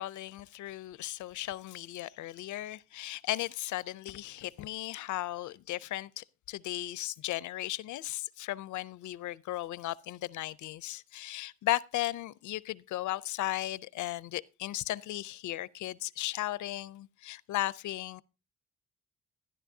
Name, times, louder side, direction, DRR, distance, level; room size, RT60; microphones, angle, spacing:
voice 1, 0.0-18.2, left 15 dB, 90° left, 0.5 m, -36 dB
12.5 x 11.0 x 2.7 m
cardioid pair, 115°, 29 cm